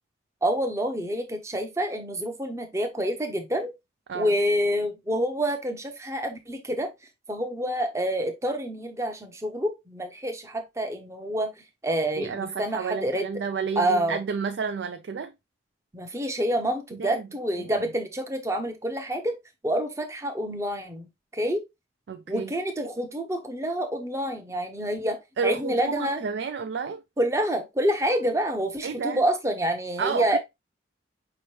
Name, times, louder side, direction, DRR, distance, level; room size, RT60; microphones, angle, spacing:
voice 1, 0.4-3.7 4.1-6.9 7.3-11.5 11.8-13.3 13.8-14.2 15.9-19.4 19.6-21.6 22.3-26.2 27.2-30.4, right 1 dB, 15° right, 0.6 m, -27 dB
voice 2, 12.2-15.3 17.0-17.2 17.6-17.7 22.1-22.5 25.4-27.0 28.8-29.2 30.0-30.4, right 5 dB, 70° right, 0.4 m, -31 dB
5.2 x 3.0 x 3.1 m
head